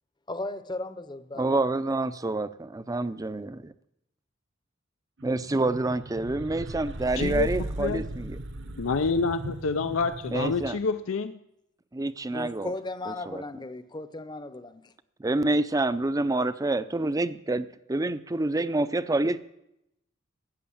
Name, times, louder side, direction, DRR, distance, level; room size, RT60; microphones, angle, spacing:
voice 1, 0.3-1.5 12.3-14.9, left 2 dB, 20° left, 0.7 m, -36 dB
voice 2, 1.4-3.7 5.2-8.4 10.3-10.8 11.9-12.7 13.3-13.4 15.2-19.4, right 2 dB, 20° right, 0.5 m, -27 dB
sound 1, 5.2-10.7, right 1 dB, 65° right, 1.1 m, -37 dB
voice 3, 7.2-7.5 7.8-8.0 8.8-11.4, left 4 dB, 90° left, 0.5 m, -27 dB
14.0 x 7.9 x 8.7 m
head